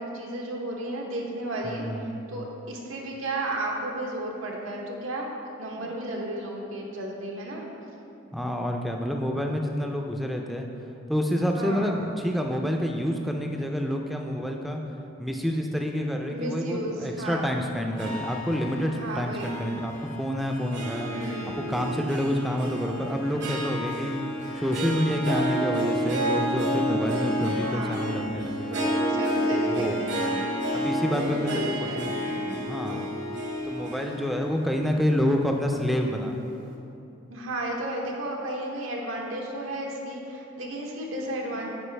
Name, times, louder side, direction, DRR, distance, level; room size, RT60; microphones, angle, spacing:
voice 1, 0.0-5.3 5.6-7.7 11.5-12.0 16.3-17.6 18.9-19.7 21.1-21.6 27.5-28.1 28.7-30.4 31.0-32.6 37.3-41.7, right 1 dB, 85° right, -1 dB, 0.9 m, -33 dB
voice 2, 1.6-2.2 5.8-5.9 8.3-10.7 11.1-14.8 15.2-21.1 21.6-24.1 24.5-28.8 29.7-30.0 30.7-32.1 32.7-33.1 33.7-36.4, equal, ahead, 2 dB, 0.4 m, -28 dB
Harp, 17.9-36.4, equal, 60° right, 0.9 m, -30 dB
9.8 x 4.7 x 3.3 m, 2.8 s
head